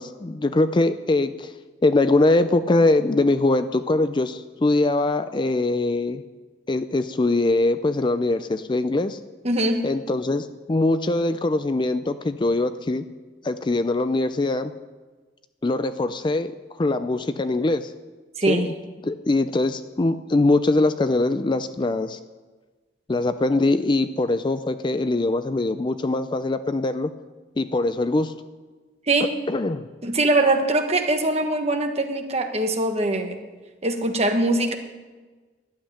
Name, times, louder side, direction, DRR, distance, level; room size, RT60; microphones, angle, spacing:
voice 1, 0.0-1.5 1.8-6.2 6.7-9.2 9.8-13.0 13.4-14.7 15.6-17.9 18.5-18.7 19.0-22.2 23.1-27.1 27.6-28.3 29.5-29.9, left 2 dB, 25° left, 11 dB, 0.4 m, -22 dB
voice 2, 9.4-9.8 18.4-18.7 29.1-29.3 30.0-33.4 33.8-34.8, right 2 dB, 35° right, 5 dB, 1.3 m, -22 dB
12.0 x 7.7 x 9.9 m, 1.3 s
head